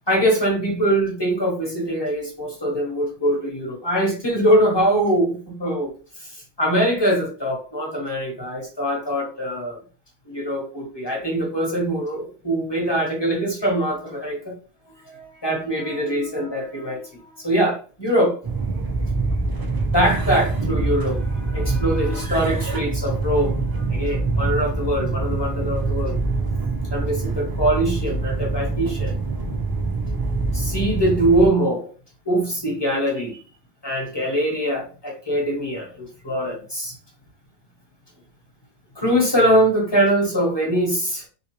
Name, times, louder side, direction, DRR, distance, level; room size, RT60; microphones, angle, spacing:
voice 1, 0.1-5.9 6.2-9.8 10.3-14.6 15.1-18.4 19.9-26.2 26.9-29.2 30.5-31.9 32.3-33.4 33.8-37.0 39.0-41.2, right 1 dB, 20° left, 1.0 m, -23 dB
sound 1, 18.4-31.5, right 3 dB, 35° right, 0.3 m, -25 dB
3.7 x 2.9 x 2.9 m
omnidirectional pair, 1.3 m